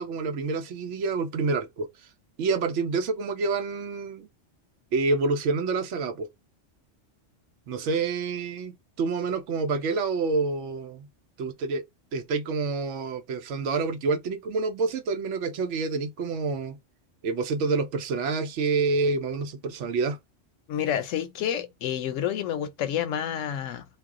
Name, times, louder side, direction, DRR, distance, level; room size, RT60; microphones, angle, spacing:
voice 1, 0.0-1.9 2.4-4.3 4.9-6.3 7.7-11.1 11.4-11.8 12.1-16.8 17.2-20.2, right 4 dB, 80° right, 0.9 m, -28 dB
voice 2, 20.7-23.9, left 10 dB, 85° left, 0.9 m, -29 dB
2.3 x 2.2 x 3.6 m
omnidirectional pair, 1.3 m